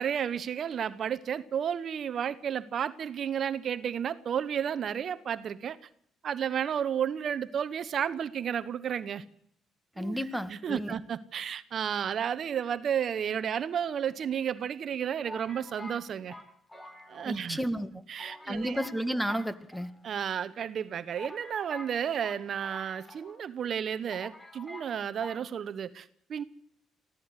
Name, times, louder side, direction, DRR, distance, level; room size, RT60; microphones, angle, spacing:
voice 1, 0.0-5.8 6.2-9.2 10.0-10.2 10.5-16.3 17.1-17.6 18.1-18.8 20.0-26.4, right 8 dB, 60° right, 15 dB, 1.0 m, -32 dB
voice 2, 10.0-11.0 17.2-17.9 18.5-19.9, equal, 5° left, 13 dB, 1.9 m, -32 dB
sound 1, 13.8-14.5 15.2-17.5 17.8-17.9 18.2-19.0 19.3-20.3 20.8-20.9 21.2-23.5 23.7-23.8 24.1-24.9 25.2-25.4, left 1 dB, 20° left, 4.4 m, -47 dB
24.0 x 15.5 x 8.1 m, 0.69 s
supercardioid pair, 55°, 0 cm